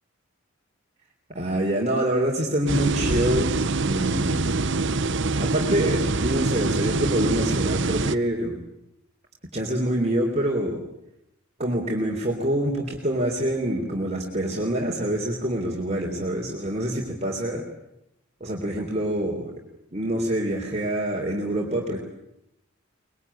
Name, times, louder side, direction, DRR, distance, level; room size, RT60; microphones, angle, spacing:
voice 1, 1.3-4.7 5.4-8.6 9.5-10.8 11.6-17.6 18.4-19.5 19.9-22.0, right 1 dB, 30° right, -1 dB, 3.6 m, -26 dB
sound 1, 2.7-8.2, right 3 dB, 60° right, 1.0 m, -25 dB
24.0 x 22.0 x 10.0 m, 0.85 s
head